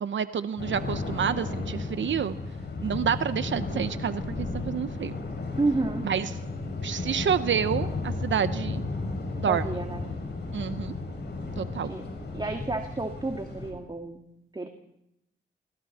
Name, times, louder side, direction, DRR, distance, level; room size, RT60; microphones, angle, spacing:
voice 1, 0.0-2.3 2.8-5.1 6.0-6.3 6.8-8.8 9.4-9.7 10.5-10.9 11.6-11.9, right 8 dB, 70° right, 12 dB, 0.9 m, -28 dB
sound 1, 0.6-13.7, left 3 dB, 60° left, 6.5 m, -34 dB
voice 2, 5.6-6.0 9.5-10.0 11.6-12.0 12.3-14.2 14.5-14.7, right 2 dB, 25° right, 4 dB, 2.2 m, -30 dB
27.5 x 24.5 x 4.3 m, 0.81 s
cardioid pair, 65°, 20 cm